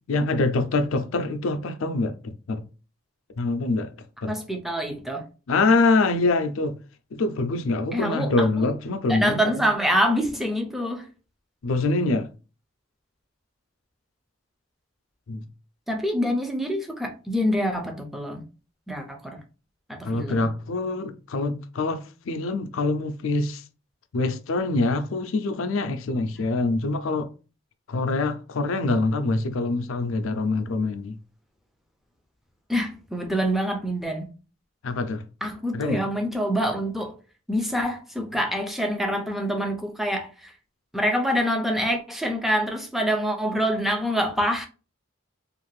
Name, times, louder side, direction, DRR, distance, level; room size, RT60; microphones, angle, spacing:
voice 1, 0.1-2.6 3.4-3.9 4.2-4.4 5.5-6.8 7.1-9.6 11.6-12.3 15.3-15.5 20.0-23.6 24.1-27.3 27.9-31.2 34.8-35.3 35.7-36.0, left 3 dB, 70° left, 0.4 m, -25 dB
voice 2, 4.3-5.3 7.9-8.7 9.1-11.1 15.9-18.4 18.9-19.4 19.9-20.5 32.7-34.3 35.4-37.1 37.5-40.5 40.9-44.7, equal, ahead, 0.4 m, -26 dB
2.5 x 2.4 x 3.2 m
head